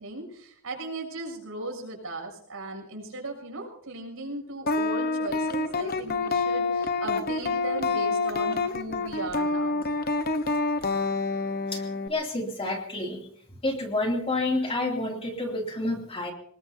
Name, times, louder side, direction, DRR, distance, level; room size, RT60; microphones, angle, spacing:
voice 1, 0.0-9.8, right 2 dB, 70° right, 1 dB, 6.6 m, -37 dB
sound 1, 4.7-12.1, left 3 dB, 45° left, 1.1 m, -27 dB
voice 2, 12.1-13.2 13.6-16.3, left 2 dB, 25° left, 1 dB, 2.7 m, -29 dB
24.5 x 20.0 x 2.8 m, 0.64 s
head